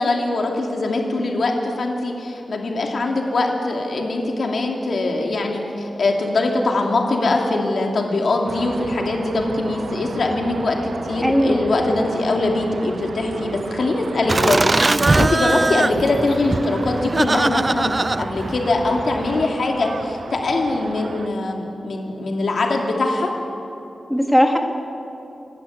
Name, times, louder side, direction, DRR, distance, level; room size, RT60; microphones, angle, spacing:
voice 1, 0.0-23.3, left 2 dB, 60° left, 1 dB, 2.8 m, -22 dB
sound 1, 8.5-21.3, right 4 dB, 60° right, 0.9 m, -34 dB
voice 2, 11.2-11.6 24.1-24.6, equal, 5° left, 3 dB, 1.7 m, -17 dB
Laughter, 14.3-19.5, right 2 dB, 25° right, 0.4 m, -21 dB
27.0 x 12.0 x 9.5 m, 2.9 s
wide cardioid pair, 160°, 0 cm